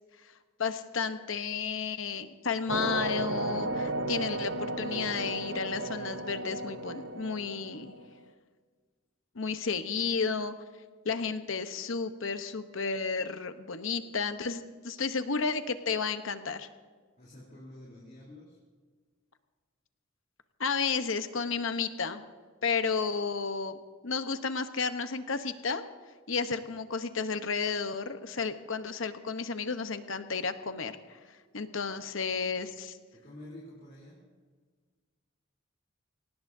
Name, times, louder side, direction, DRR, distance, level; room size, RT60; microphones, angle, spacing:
voice 1, 0.6-7.9 9.3-10.5 11.0-16.7 20.6-22.2 22.6-23.8 24.0-25.8 26.3-31.2 31.5-32.9, left 5 dB, 70° left, 9 dB, 0.9 m, -32 dB
sound 1, 2.7-8.1, right 2 dB, 55° right, 0.7 m, -34 dB
voice 2, 17.2-18.6 32.2-32.5 33.1-34.3, left 1 dB, 40° left, -5 dB, 3.3 m, -49 dB
24.0 x 18.5 x 2.7 m, 1.5 s
head